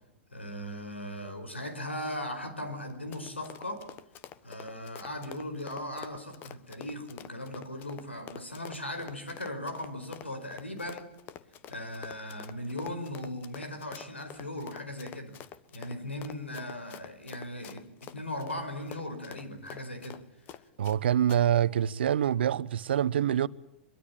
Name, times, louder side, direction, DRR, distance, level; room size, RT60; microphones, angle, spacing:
voice 1, 0.3-3.9 4.4-11.1 11.7-15.4 15.7-20.2, left 1 dB, 90° left, 4.9 m, -38 dB
Run, 2.8-21.0 21.3-21.4, left 10 dB, 35° left, 1.3 m, -47 dB
voice 2, 20.8-23.5, right 10 dB, 65° right, 0.9 m, -25 dB
24.5 x 23.0 x 9.0 m
figure-of-eight pair, 105°, 6 cm